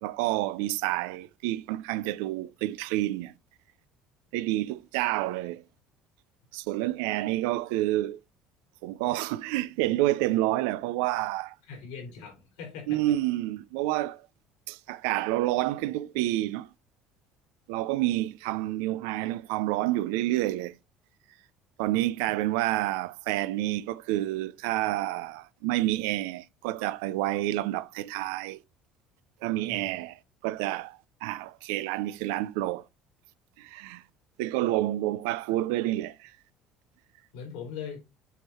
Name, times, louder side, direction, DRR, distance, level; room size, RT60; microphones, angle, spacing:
voice 1, 0.0-3.3 4.3-5.6 6.5-8.2 8.8-11.5 12.9-14.3 14.7-16.7 17.7-20.7 21.8-28.6 29.4-32.9 33.6-34.0 34.4-36.3, right 16 dB, 85° right, 0.4 m, -29 dB
voice 2, 11.7-13.0 29.6-30.0 37.3-38.0, left 6 dB, 85° left, 4.0 m, -40 dB
8.2 x 3.8 x 4.3 m
supercardioid pair, 85°, 0 cm